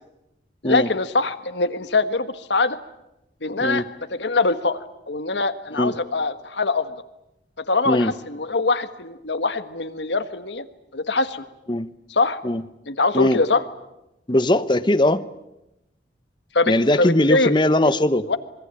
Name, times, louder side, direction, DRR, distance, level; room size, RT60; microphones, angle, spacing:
voice 1, 0.6-2.8 3.4-3.8 4.1-6.9 7.6-10.6 10.9-11.4 12.1-12.4 12.9-13.6 16.5-17.5 18.3-18.4, left 3 dB, 80° left, 11 dB, 1.5 m, -23 dB
voice 2, 14.3-15.3 16.7-18.3, left 1 dB, 25° left, 12 dB, 0.9 m, -20 dB
26.0 x 22.0 x 9.0 m, 0.90 s
head